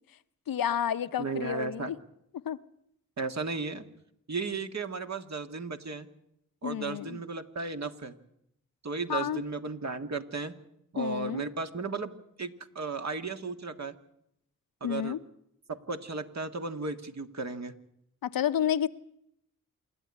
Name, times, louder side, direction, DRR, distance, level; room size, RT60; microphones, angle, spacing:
voice 1, 0.5-2.0 2.4-2.6 6.6-7.2 9.1-9.4 11.0-11.4 14.8-15.2 18.2-18.9, left 9 dB, 90° left, 13 dB, 0.8 m, -30 dB
voice 2, 1.2-1.9 3.2-3.9 4.3-6.1 6.6-8.1 8.8-10.5 10.9-12.1 12.4-14.0 14.8-15.2 15.7-17.7, right 4 dB, 50° right, 7 dB, 1.8 m, -35 dB
27.0 x 11.0 x 9.8 m, 0.76 s
cardioid pair, 60°, 34 cm